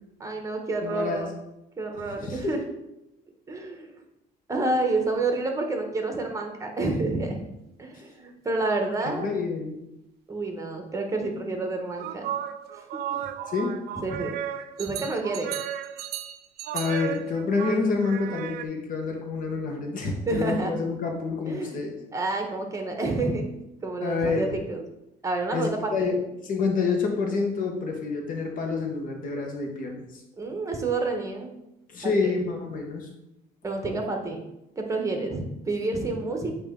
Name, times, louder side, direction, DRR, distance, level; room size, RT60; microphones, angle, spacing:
voice 1, 0.2-1.3 1.8-2.6 3.5-3.9 4.5-7.4 7.8-9.3 10.3-12.3 12.7-13.2 14.0-14.4 14.8-15.5 20.2-20.7 21.5-21.8 22.1-23.5 23.8-24.8 25.2-26.1 30.4-31.5 32.0-32.3 33.6-34.4 34.8-36.6, right 2 dB, 20° right, 3 dB, 1.1 m, -29 dB
voice 2, 0.8-1.2 2.2-2.5 9.1-9.8 13.5-13.8 16.7-21.9 24.0-24.5 25.5-30.2 31.9-33.1 33.9-34.0, left 4 dB, 55° left, 2 dB, 1.4 m, -28 dB
sound 1, 12.0-18.7, right 10 dB, 70° right, 0.4 m, -34 dB
8.6 x 3.0 x 3.8 m, 0.88 s
cardioid pair, 110°, 17 cm